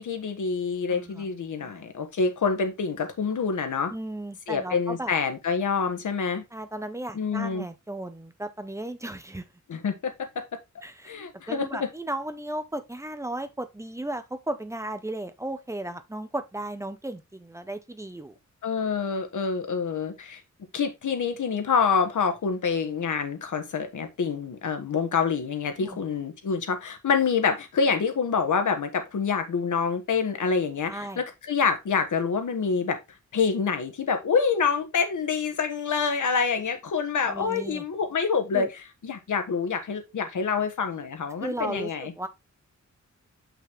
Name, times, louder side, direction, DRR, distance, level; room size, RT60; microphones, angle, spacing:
voice 1, 0.0-3.9 4.5-6.4 7.1-7.6 9.7-10.3 11.1-11.9 18.6-20.4 20.7-33.0 33.3-38.7 39.0-42.1, left 5 dB, 75° left, 1.5 m, -26 dB
voice 2, 0.9-1.3 1.6-1.9 3.9-5.1 6.5-9.5 10.8-11.2 11.5-18.4 25.8-26.0 30.9-31.2 37.3-37.8 38.5-38.7 41.4-42.3, right 1 dB, 10° right, 0.7 m, -35 dB
6.2 x 5.9 x 3.5 m
wide cardioid pair, 170°, 30 cm